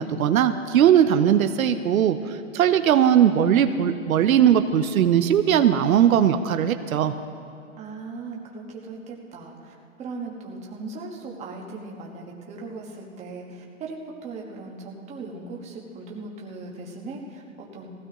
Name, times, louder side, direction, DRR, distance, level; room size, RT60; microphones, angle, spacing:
voice 1, 0.0-7.1, right 9 dB, 80° right, 8 dB, 0.8 m, -19 dB
voice 2, 7.8-17.9, right 3 dB, 15° right, -1 dB, 1.4 m, -38 dB
19.0 x 16.0 x 3.0 m, 2.4 s
hypercardioid pair, 155°, 41 cm